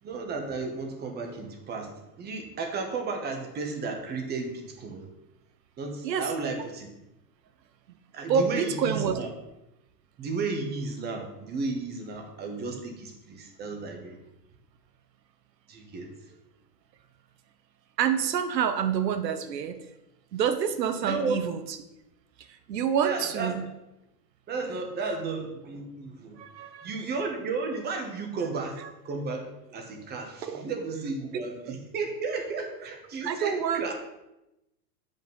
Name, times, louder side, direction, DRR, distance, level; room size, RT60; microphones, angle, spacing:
voice 1, 0.0-5.1 5.8-6.9 8.1-9.3 10.2-14.2 15.7-16.3 21.0-21.5 23.0-23.6 24.5-26.4 26.8-33.9, right 4 dB, 20° right, 4 dB, 1.2 m, -33 dB
voice 2, 8.3-9.2 18.0-19.8 20.3-21.6 22.7-23.6 26.4-26.9 30.4-30.6 31.3-31.4 33.2-33.8, right 7 dB, 85° right, 9 dB, 1.1 m, -27 dB
7.7 x 5.4 x 5.3 m, 0.92 s
hypercardioid pair, 140°, 49 cm